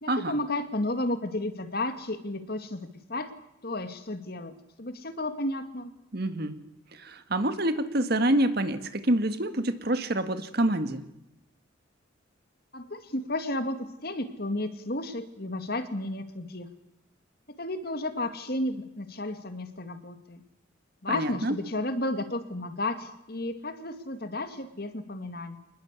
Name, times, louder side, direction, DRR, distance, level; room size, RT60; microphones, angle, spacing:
voice 1, 0.0-3.3 3.6-5.9 12.7-13.8 14.0-16.7 17.6-20.4 21.0-25.6, left 1 dB, 50° left, 9 dB, 2.3 m, -32 dB
voice 2, 6.1-6.6 6.9-11.0 21.1-21.6, right 1 dB, 50° right, 10 dB, 1.8 m, -27 dB
27.0 x 20.0 x 8.4 m, 0.83 s
head